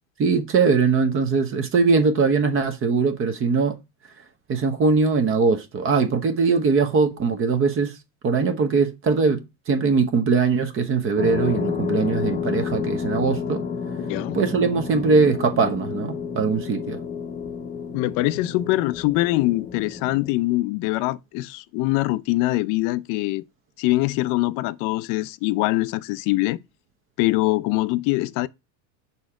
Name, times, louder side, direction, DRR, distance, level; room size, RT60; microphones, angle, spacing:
voice 1, 0.2-3.8 4.5-8.0 8.2-13.6 14.3-17.0, right 4 dB, 35° right, 0.9 m, -21 dB
sound 1, 11.2-20.3, left 6 dB, 20° left, 0.8 m, -30 dB
voice 2, 17.9-23.4 23.8-26.6 27.2-28.5, left 19 dB, 55° left, 0.5 m, -23 dB
5.6 x 4.2 x 4.9 m
supercardioid pair, 115°, 39 cm